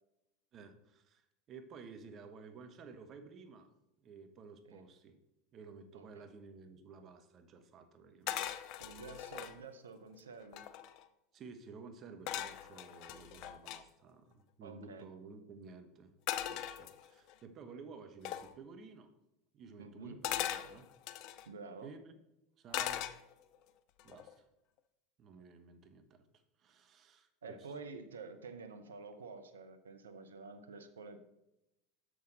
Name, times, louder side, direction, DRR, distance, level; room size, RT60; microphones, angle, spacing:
voice 1, 0.5-3.7 4.0-5.2 5.5-8.4 8.7-9.0 11.3-16.1 16.4-19.1 19.5-20.9 21.8-22.1 22.6-23.1 24.0-24.5 25.2-26.3 26.6-27.7, right 4 dB, 40° right, 8 dB, 1.0 m, -53 dB
voice 2, 5.9-6.2 8.8-10.7 14.6-15.1 19.8-20.2 21.5-21.9 27.4-31.2, right 4 dB, 85° right, 9 dB, 0.6 m, -49 dB
sound 1, 8.3-9.6 10.1-10.2 10.4-11.1 12.3-13.8 16.3-17.3 18.3-18.5 20.2-21.5 22.7-23.6 24.0-24.3, left 11 dB, 55° left, 0.5 m, -40 dB
6.9 x 6.3 x 3.9 m, 0.88 s
hypercardioid pair, 85°, 0 cm